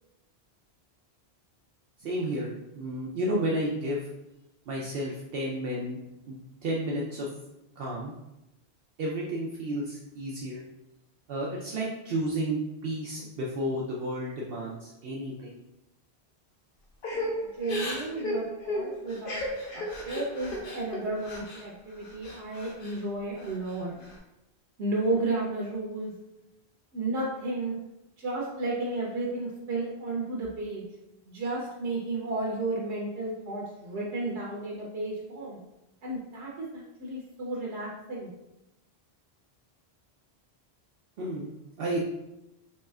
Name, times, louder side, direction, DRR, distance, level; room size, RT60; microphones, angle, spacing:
voice 1, 2.0-4.1 4.7-6.0 6.3-6.4 6.6-7.3 7.8-8.1 9.0-10.6 11.3-15.6 41.2-41.5 41.8-42.0, right 1 dB, 65° right, -4 dB, 0.8 m, -32 dB
Crying sobbing / Breathing, 17.0-21.6 22.0-23.0 23.4-24.1, left 1 dB, 60° left, 0.9 m, -35 dB
voice 2, 17.4-19.4 19.7-23.9 24.8-26.1 26.9-27.8 28.2-30.8 31.2-35.6 36.0-38.3, right 2 dB, 90° right, -3 dB, 1.0 m, -33 dB
4.2 x 3.1 x 2.3 m, 0.91 s
omnidirectional pair, 1.1 m